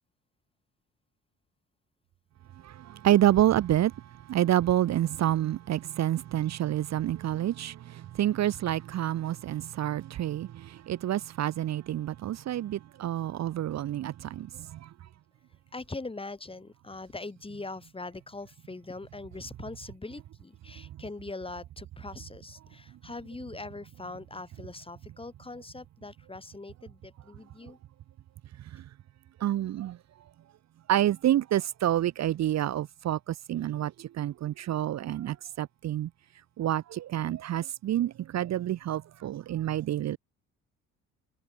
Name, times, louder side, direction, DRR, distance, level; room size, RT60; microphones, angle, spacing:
voice 1, 3.0-3.9 4.3-7.7 8.2-10.5 10.9-14.5 29.4-30.0 30.9-33.9 34.2-36.1 36.6-40.2, right 12 dB, 55° right, 0.8 m, -28 dB
voice 2, 15.7-27.8, left 3 dB, 15° left, 2.6 m, -42 dB
cardioid pair, 80°, 32 cm